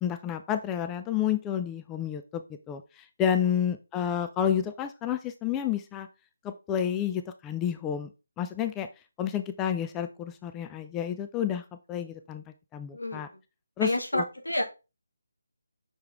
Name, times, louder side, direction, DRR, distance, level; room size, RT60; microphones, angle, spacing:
voice 1, 0.0-2.4 2.7-6.1 6.4-8.1 8.4-8.9 9.2-12.4 12.7-13.3 13.8-14.2, left 9 dB, 15° left, 9 dB, 0.4 m, -30 dB
voice 2, 12.9-13.2 13.8-14.6, left 1 dB, 85° left, 3 dB, 1.8 m, -29 dB
6.1 x 4.7 x 3.4 m, 0.29 s
figure-of-eight pair, 155°, 0 cm